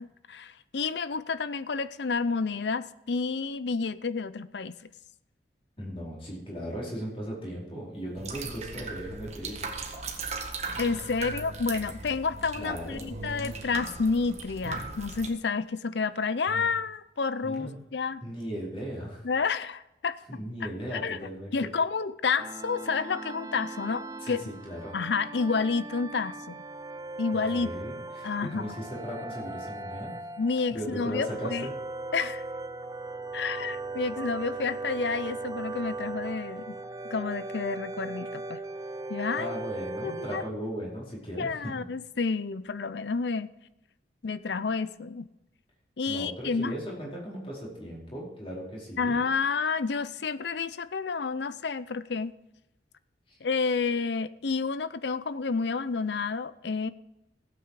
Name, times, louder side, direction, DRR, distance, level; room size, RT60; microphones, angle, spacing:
voice 1, 0.0-4.9 10.8-18.2 19.2-21.2 21.5-24.4 24.9-26.6 27.2-27.7 28.2-28.8 30.4-31.7 32.1-32.4 33.3-36.8 37.0-38.6 39.1-39.5 40.0-40.4 41.4-43.5 44.2-45.3 46.0-46.7 49.0-52.4 53.4-56.9, left 4 dB, 70° left, 16 dB, 0.6 m, -30 dB
voice 2, 5.8-9.7 12.5-13.1 16.5-16.7 17.4-17.8 18.2-19.2 20.3-21.7 24.2-25.0 27.3-30.1 30.7-31.7 39.4-41.7 46.1-49.2 53.3-53.4, equal, 30° left, -4 dB, 4.5 m, -37 dB
sound 1, 8.2-15.3, right 4 dB, 35° right, 1.7 m, -38 dB
sound 2, 22.4-40.5, right 2 dB, 20° right, 0.4 m, -38 dB
15.5 x 8.6 x 4.8 m, 0.93 s
head